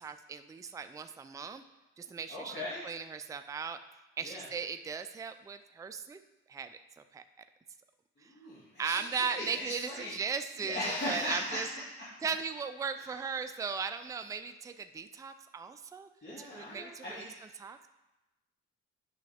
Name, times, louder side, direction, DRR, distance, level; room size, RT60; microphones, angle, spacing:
voice 1, 0.0-1.6 2.0-2.5 2.8-3.8 4.2-6.2 6.5-7.2 8.2-8.3 8.8-10.8 11.1-11.7 12.2-16.1 16.4-17.0 17.6-17.9, right 6 dB, 10° right, 9 dB, 0.3 m, -37 dB
voice 2, 2.3-2.8 4.2-4.5 8.2-10.1 10.6-11.6 13.0-13.1 16.2-17.5, left 1 dB, 35° left, -9 dB, 2.3 m, -38 dB
8.4 x 5.6 x 3.5 m, 1.0 s
cardioid pair, 90°, 30 cm